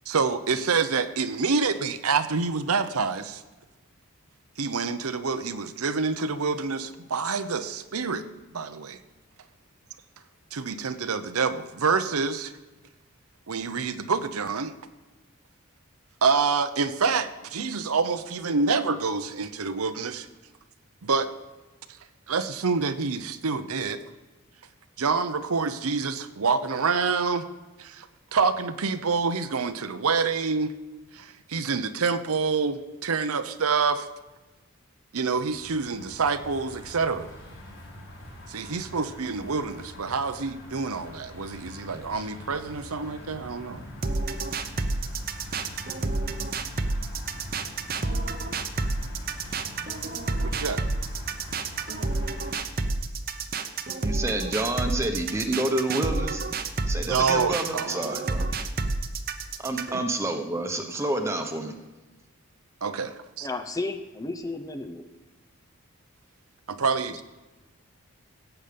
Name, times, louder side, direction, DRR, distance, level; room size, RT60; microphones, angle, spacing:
voice 1, 0.1-3.4 4.6-8.2 8.5-9.0 10.5-12.5 13.5-14.7 16.2-20.3 21.0-21.3 22.3-24.0 25.0-27.5 27.8-30.7 31.1-34.1 35.1-37.3 38.5-43.8 50.4-50.8 57.1-58.1 59.9-60.1 62.8-63.5 66.7-67.2, right 4 dB, 85° right, 10 dB, 0.8 m, -27 dB
sound 1, 35.3-52.5, left 1 dB, 60° left, 3.8 m, -44 dB
sound 2, 44.0-60.0, right 3 dB, 40° right, 0.8 m, -29 dB
voice 2, 54.0-56.4 56.9-58.5 59.6-61.8, right 1 dB, 10° right, 4 dB, 1.1 m, -28 dB
voice 3, 63.4-65.1 67.0-67.2, left 2 dB, 15° left, 8 dB, 0.6 m, -33 dB
16.0 x 8.2 x 5.2 m, 1.2 s
head